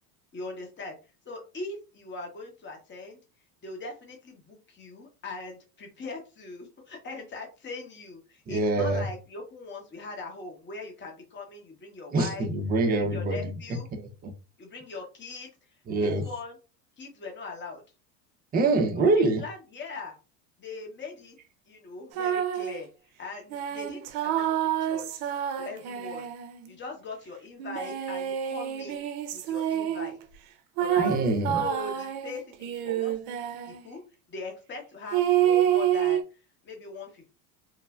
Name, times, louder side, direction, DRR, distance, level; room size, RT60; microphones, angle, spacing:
voice 1, 0.3-1.0 1.2-3.2 3.6-12.5 12.8-13.9 14.6-15.5 15.9-16.6 17.0-17.8 18.9-20.1 20.6-21.4 21.7-22.9 23.2-25.2 25.5-26.3 26.7-29.0 29.3-30.2 30.8-31.1 31.5-33.4 33.6-34.0 34.3-36.2 36.6-37.3, left 3 dB, 25° left, 1.0 m, -40 dB
voice 2, 8.5-9.0 12.1-13.5 14.0-14.3 15.9-16.2 18.5-19.4 31.0-31.6, right 2 dB, 20° right, 0.5 m, -25 dB
sound 1, 22.1-22.8 23.5-26.7 27.6-30.1 30.8-33.8 35.1-36.2, right 10 dB, 65° right, 0.6 m, -28 dB
3.2 x 2.1 x 2.3 m
hypercardioid pair, 95°, 48 cm